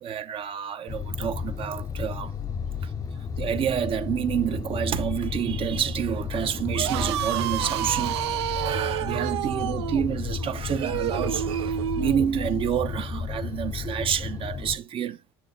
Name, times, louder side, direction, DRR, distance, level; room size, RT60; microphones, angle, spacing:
voice 1, 0.0-2.3 2.8-2.9 3.4-15.2, right 9 dB, 40° right, 0.7 m, -28 dB
sound 1, 0.9-14.8, left 6 dB, 25° left, 0.5 m, -33 dB
sound 2, 6.6-12.3, right 13 dB, 80° right, 0.4 m, -29 dB
9.1 x 6.9 x 2.6 m
hypercardioid pair, 80°, 14 cm